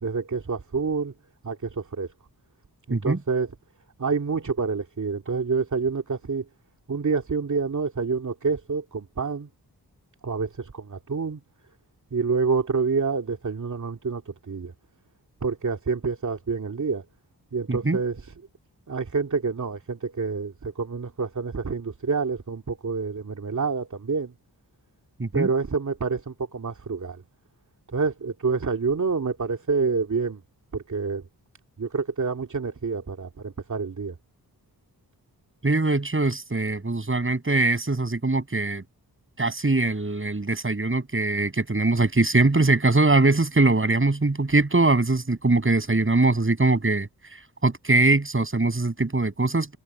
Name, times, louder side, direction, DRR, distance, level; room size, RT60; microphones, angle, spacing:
voice 1, 0.0-1.1 1.4-2.1 2.9-3.5 4.0-6.4 6.9-9.5 10.2-11.4 12.1-14.7 15.4-17.0 17.5-18.3 18.9-24.3 25.3-27.2 27.9-30.4 30.7-31.2 31.8-34.2, right 4 dB, 50° right, 2.5 m, -27 dB
voice 2, 35.6-38.8 39.4-47.1 47.6-49.8, right 2 dB, 30° right, 7.1 m, -22 dB
cardioid pair, 45°, 38 cm